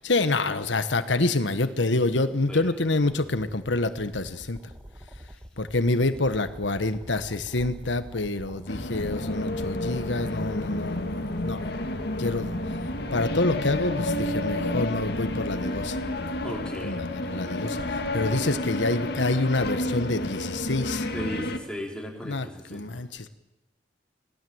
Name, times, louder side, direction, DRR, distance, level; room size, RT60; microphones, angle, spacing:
voice 1, 0.0-4.6 5.6-11.6 12.2-12.6 13.1-16.0 16.8-21.1 22.2-23.3, left 2 dB, 90° left, 11 dB, 1.4 m, -27 dB
sound 1, 2.8-16.2, equal, 10° right, 1.5 m, -45 dB
sound 2, 8.7-21.6, left 1 dB, 65° left, 2.1 m, -30 dB
voice 2, 16.4-17.0 21.0-23.0, equal, 5° left, 1 dB, 4.6 m, -36 dB
27.0 x 19.0 x 8.0 m, 0.95 s
head